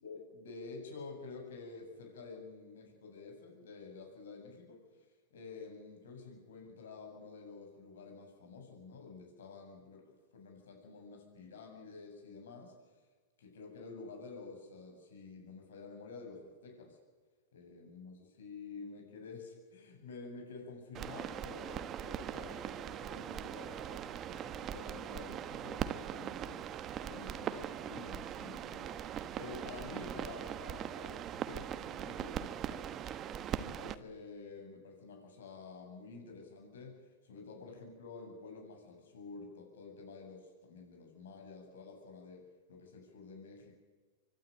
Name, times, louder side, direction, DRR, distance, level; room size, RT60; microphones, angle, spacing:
voice 1, 0.0-4.8 5.3-12.7 13.4-17.0 17.5-26.6 27.1-43.8, left 4 dB, 85° left, 2 dB, 7.6 m, -50 dB
sound 1, 20.9-33.9, right 9 dB, 30° right, 1.0 m, -41 dB
24.5 x 12.0 x 9.2 m, 1.4 s
hypercardioid pair, 140°, 0 cm